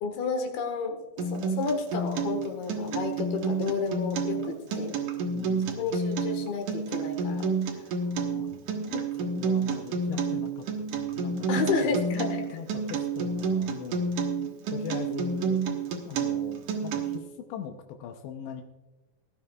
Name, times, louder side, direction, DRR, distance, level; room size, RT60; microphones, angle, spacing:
voice 1, 0.0-5.0 5.8-7.5 11.5-12.6, left 5 dB, 70° left, 5 dB, 3.3 m, -31 dB
Acoustic guitar, 1.2-17.2, right 4 dB, 65° right, 2.2 m, -29 dB
voice 2, 5.3-5.9 8.0-8.5 8.7-10.6 10.9-11.5 11.8-14.1 14.7-15.6 16.1-18.6, left 7 dB, 90° left, 4 dB, 3.0 m, -41 dB
20.0 x 12.0 x 2.4 m, 1.1 s
omnidirectional pair, 4.8 m